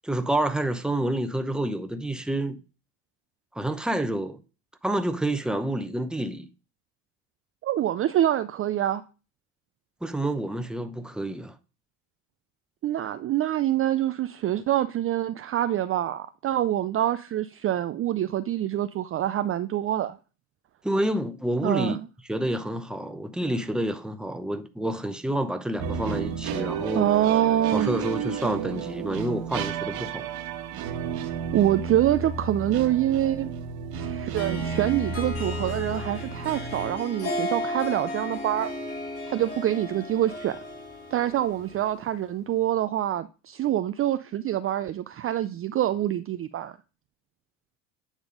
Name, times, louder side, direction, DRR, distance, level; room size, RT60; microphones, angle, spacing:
voice 1, 0.0-2.6 3.5-4.4 4.8-6.5 10.0-11.6 20.8-22.0 22.3-27.1 27.7-30.3, right 1 dB, ahead, 0.8 m, -28 dB
voice 2, 7.6-9.0 12.8-20.2 21.6-22.0 26.9-27.9 31.5-33.5 33.9-38.7 39.3-40.6 41.1-46.7, right 12 dB, 35° right, 0.4 m, -25 dB
sound 1, 25.8-36.9, right 6 dB, 65° right, 1.6 m, -32 dB
Harp, 34.3-42.1, left 1 dB, 35° left, 4.6 m, -35 dB
9.1 x 3.6 x 5.1 m
supercardioid pair, 85°, 41 cm